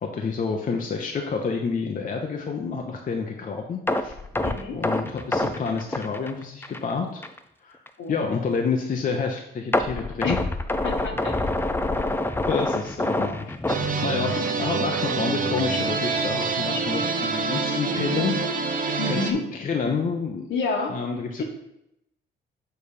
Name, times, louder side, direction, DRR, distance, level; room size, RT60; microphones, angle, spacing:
voice 1, 0.0-4.1 4.7-7.2 7.6-7.8 8.1-10.4 12.5-18.4 19.1-20.5 20.9-21.4, left 5 dB, 45° left, 2 dB, 0.8 m, -29 dB
sound 1, 3.9-6.9 7.2-7.4 7.9-8.0 9.7-14.6 14.9-15.1 15.6-15.7, left 2 dB, 10° left, 0.5 m, -26 dB
voice 2, 4.4-4.8 8.0-8.2 10.2-10.3 10.8-11.4 19.0-19.4 20.5-20.9, left 4 dB, 70° left, 1 dB, 1.7 m, -28 dB
sound 2, 13.7-19.3, right 4 dB, 45° right, 0.9 m, -26 dB
6.8 x 4.1 x 5.1 m, 0.82 s
cardioid pair, 90°, 20 cm